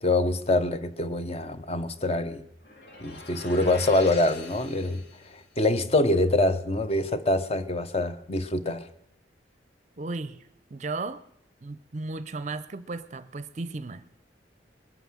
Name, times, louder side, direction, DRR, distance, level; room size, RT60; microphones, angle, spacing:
voice 1, 0.0-2.4 3.0-5.0 5.3-8.8, left 2 dB, 35° left, 12 dB, 0.8 m, -25 dB
sound 1, 2.6-5.4, left 3 dB, 65° left, 2.2 m, -44 dB
voice 2, 10.0-11.2 11.6-14.0, right 3 dB, 40° right, 14 dB, 0.5 m, -35 dB
21.0 x 9.1 x 7.6 m, 0.79 s
head